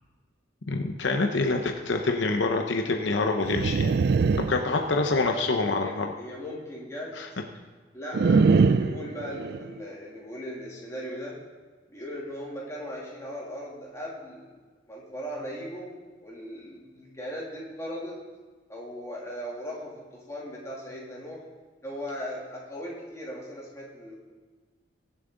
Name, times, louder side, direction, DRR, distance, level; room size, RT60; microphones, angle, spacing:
voice 1, 0.7-4.0 4.5-6.1 7.2-7.3, left 3 dB, 65° left, 4 dB, 0.8 m, -26 dB
sound 1, 3.4-5.3 8.1-9.7, right 4 dB, 55° right, 0.4 m, -23 dB
voice 2, 5.3-7.1 7.9-11.4 11.9-14.5 14.9-16.0 16.2-18.2 18.7-21.4 21.8-24.2, equal, 15° left, -4 dB, 2.8 m, -38 dB
22.0 x 7.5 x 3.9 m, 1.4 s
head